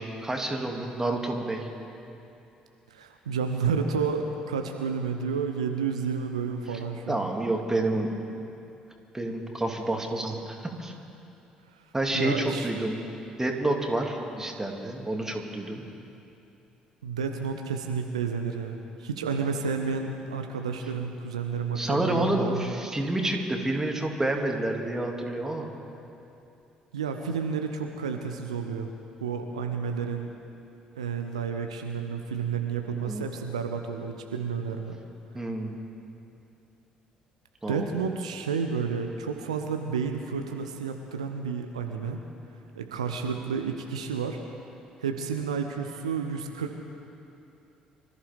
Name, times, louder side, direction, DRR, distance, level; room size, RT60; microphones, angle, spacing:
voice 1, 0.0-1.7 6.7-6.8 7.1-8.1 9.1-10.9 11.9-13.0 13.4-15.8 21.8-25.7 32.9-33.2 35.3-35.7 37.6-37.9, right 1 dB, 15° right, 2 dB, 2.3 m, -29 dB
voice 2, 2.9-7.2 11.7-12.7 17.0-22.7 26.9-28.9 29.2-30.3 31.0-35.0 37.7-42.2 42.7-44.4 45.0-46.8, right 5 dB, 80° right, 5 dB, 0.7 m, -31 dB
25.0 x 14.0 x 3.5 m, 2.8 s
figure-of-eight pair, 50°, 3 cm